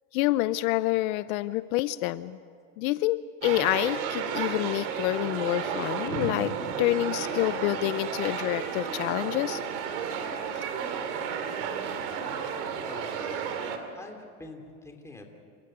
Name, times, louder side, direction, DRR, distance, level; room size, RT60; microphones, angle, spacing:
voice 1, 0.1-2.4 2.8-6.5 6.8-9.6, left 17 dB, 70° left, 15 dB, 0.7 m, -27 dB
sound 1, 3.4-13.8, right 7 dB, 85° right, 2.9 m, -32 dB
voice 2, 12.9-13.5 13.9-15.3, left 2 dB, 5° left, 3 dB, 3.0 m, -45 dB
28.0 x 15.5 x 9.0 m, 2.2 s
supercardioid pair, 140°, 43 cm